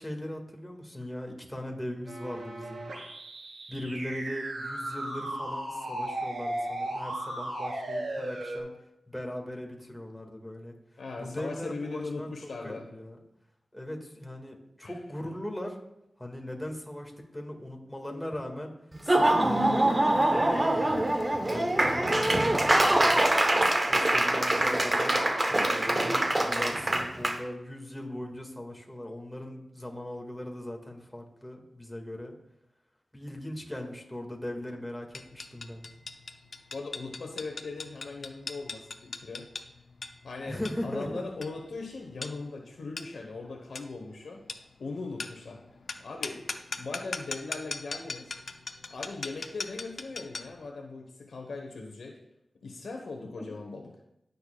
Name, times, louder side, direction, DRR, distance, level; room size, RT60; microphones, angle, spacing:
voice 1, 0.0-2.8 3.7-8.7 9.1-10.7 11.2-12.3 12.6-13.2 13.7-15.8 16.2-18.7 19.0-23.3 23.8-32.3 33.1-35.8 40.5-41.3 53.3-53.4, left 1 dB, 10° left, 1 dB, 1.9 m, -39 dB
sound 1, 2.1-8.6, right 1 dB, 80° right, 2.6 m, -36 dB
voice 2, 11.0-12.9 14.8-14.9 36.7-39.5 40.2-44.4 44.8-45.6 46.0-46.5 46.8-48.3 48.9-52.2 52.6-53.9, left 3 dB, 90° left, 1 dB, 1.0 m, -39 dB
Laughter / Applause, 18.9-27.4, right 1 dB, 30° right, 1.0 m, -24 dB
sound 2, 35.1-50.6, left 4 dB, 65° left, 0.6 m, -40 dB
18.0 x 6.6 x 2.3 m, 0.83 s
cardioid pair, 60°, 0 cm